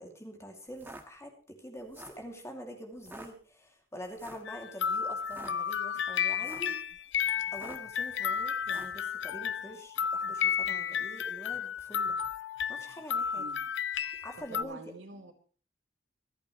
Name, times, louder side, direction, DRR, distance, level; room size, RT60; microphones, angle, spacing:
voice 1, 0.0-6.8 7.5-12.2 12.7-13.5 14.2-14.8, equal, 15° left, 2 dB, 2.6 m, -45 dB
sound 1, 0.7-1.0 1.8-2.2 3.0-3.3 4.2-4.5 5.2-5.5 6.3-6.7 7.5-7.9 8.6-9.0, right 1 dB, 10° right, 1.5 m, -47 dB
sound 2, 4.4-14.6, left 7 dB, 70° left, 0.6 m, -32 dB
voice 2, 13.3-13.7 14.4-15.3, right 2 dB, 80° right, 3 dB, 2.8 m, -46 dB
26.0 x 8.7 x 3.2 m, 0.40 s
head